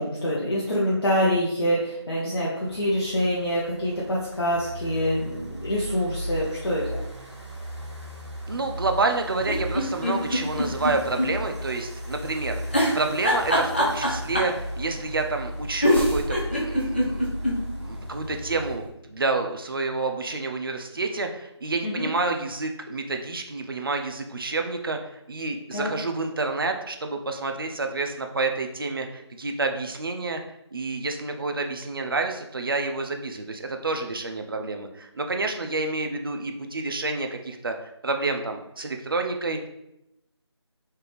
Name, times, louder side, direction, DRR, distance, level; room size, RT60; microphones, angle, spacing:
voice 1, 0.0-7.0 21.8-22.1 25.7-25.9, equal, 55° left, -6 dB, 0.8 m, -26 dB
sound 1, 2.6-18.8, equal, 80° right, 1.1 m, -36 dB
voice 2, 8.5-17.3 17.6-30.4 30.7-39.6, right 3 dB, 50° right, 4 dB, 0.4 m, -29 dB
sound 2, 9.4-11.3 11.6-11.7 12.7-14.6 15.5-15.6 15.8-17.6 18.0-18.1 18.3-18.4, equal, 25° left, 0.4 m, -23 dB
3.2 x 2.5 x 3.2 m, 0.85 s
figure-of-eight pair, 170°, 15 cm